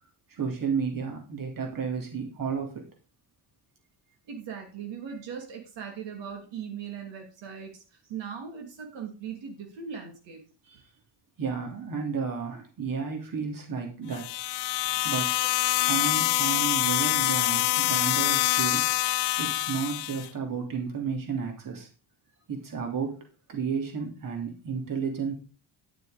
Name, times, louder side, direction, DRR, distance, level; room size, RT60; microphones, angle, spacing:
voice 1, 0.3-2.9 10.7-10.8 11.4-14.3 15.0-15.3 15.8-18.9 19.4-21.9 22.5-23.2 23.5-25.3, right 6 dB, 50° right, 3 dB, 3.3 m, -32 dB
voice 2, 4.3-10.4 14.8-15.1, right 7 dB, 80° right, 3 dB, 2.9 m, -39 dB
sound 1, 14.1-20.3, left 17 dB, 70° left, 0.6 m, -25 dB
11.5 x 6.8 x 5.1 m, 0.34 s
cardioid pair, 125°, 43 cm